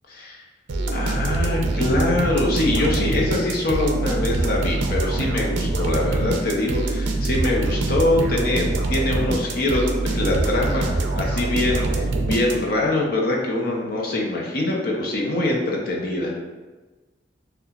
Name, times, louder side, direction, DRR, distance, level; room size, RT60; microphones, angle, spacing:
voice 1, 0.1-0.4 0.9-16.3, left 2 dB, 50° left, -1 dB, 0.8 m, -24 dB
sound 1, 0.7-12.9, right 2 dB, 80° right, 0.5 m, -24 dB
6.8 x 2.3 x 2.4 m, 1.2 s
head